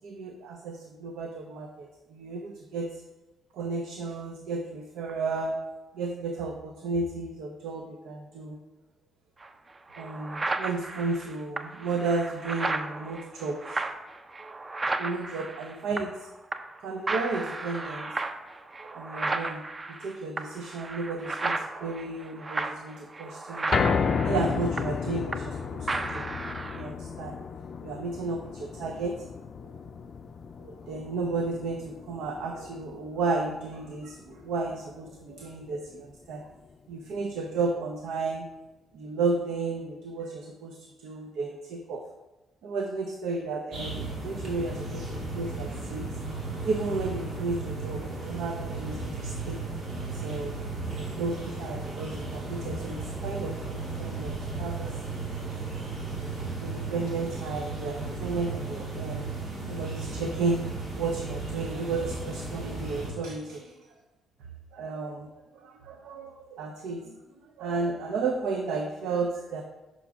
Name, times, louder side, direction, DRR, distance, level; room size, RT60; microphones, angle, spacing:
voice 1, 0.0-3.0 3.5-5.6 5.9-8.6 10.0-13.8 15.0-16.3 16.8-18.1 18.9-19.6 19.9-24.0 24.2-26.3 26.7-27.4 27.8-29.3 30.6-36.5 36.9-38.5 38.9-42.1 42.6-46.2 46.6-49.6 50.1-50.6 51.2-55.1 56.6-59.3 59.7-63.7 64.7-67.2 67.6-69.6, right 3 dB, 85° right, 4 dB, 0.5 m, -33 dB
sound 1, 9.4-9.5 9.9-16.2 16.5-16.8 17.1-25.6 25.9-26.9, right 3 dB, 25° right, 0.4 m, -34 dB
sound 2, 23.7-36.0 36.4-36.5 36.9-37.0, left 6 dB, 55° left, 0.4 m, -33 dB
sound 3, 43.7-63.1, right 3 dB, 60° right, 2.0 m, -35 dB
6.1 x 5.0 x 3.5 m, 1.1 s
cardioid pair, 90°, 0 cm